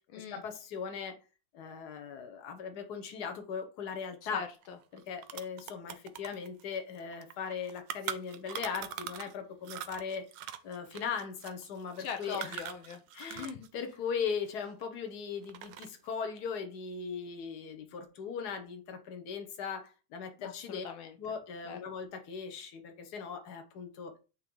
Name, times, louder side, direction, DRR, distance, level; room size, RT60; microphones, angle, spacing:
voice 1, 0.2-1.2 1.5-4.4 4.9-10.2 10.6-12.6 13.1-20.8 21.2-24.1, left 6 dB, 55° left, 1.5 m, -39 dB
voice 2, 4.2-4.8 12.0-13.0 13.3-13.7 20.4-21.1 21.6-21.8, left 7 dB, 80° left, 1.5 m, -41 dB
sound 1, 4.6-4.7 5.0-9.4 9.6-13.7 13.9-15.1 15.4-16.1, right 10 dB, 70° right, 1.2 m, -42 dB
8.9 x 3.2 x 3.8 m
omnidirectional pair, 2.2 m